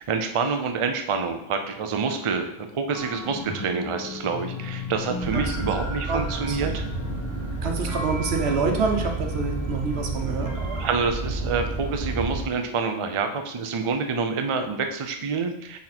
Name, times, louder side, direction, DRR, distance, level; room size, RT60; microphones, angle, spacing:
voice 1, 0.0-6.8 10.5-15.8, right 5 dB, 40° right, 6 dB, 0.5 m, -27 dB
sound 1, 2.9-11.0, left 2 dB, 20° left, 1.6 m, -37 dB
sound 2, 5.2-12.4, right 3 dB, 60° right, 1.2 m, -30 dB
voice 2, 5.3-5.7 6.1-6.6 7.6-10.5, right 4 dB, 85° right, 3 dB, 1.2 m, -27 dB
6.4 x 4.1 x 4.3 m, 0.80 s
omnidirectional pair, 1.1 m